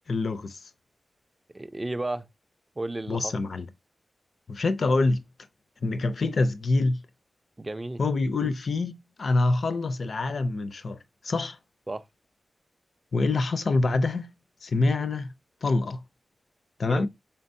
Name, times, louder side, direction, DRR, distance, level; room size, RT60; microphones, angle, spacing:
voice 1, 0.1-0.6 3.1-3.7 4.5-5.2 5.8-7.0 8.0-11.0 11.2-11.6 13.1-14.3 14.6-15.3 15.6-16.0 16.8-17.1, left 3 dB, 50° left, 0.4 m, -25 dB
voice 2, 1.5-2.2 2.8-3.3 7.6-8.0 11.9-12.0 16.8-17.1, right 2 dB, 20° right, 0.3 m, -33 dB
4.4 x 3.7 x 2.6 m
wide cardioid pair, 155°, 0 cm